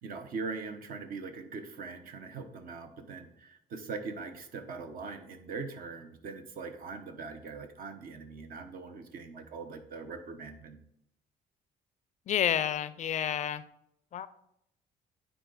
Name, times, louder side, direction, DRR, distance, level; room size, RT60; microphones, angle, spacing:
voice 1, 0.0-10.8, right 4 dB, 60° right, 7 dB, 1.0 m, -41 dB
voice 2, 12.3-13.6 14.1-14.3, left 10 dB, 45° left, 15 dB, 0.4 m, -29 dB
9.2 x 4.0 x 4.0 m, 0.77 s
cardioid pair, 110°, 17 cm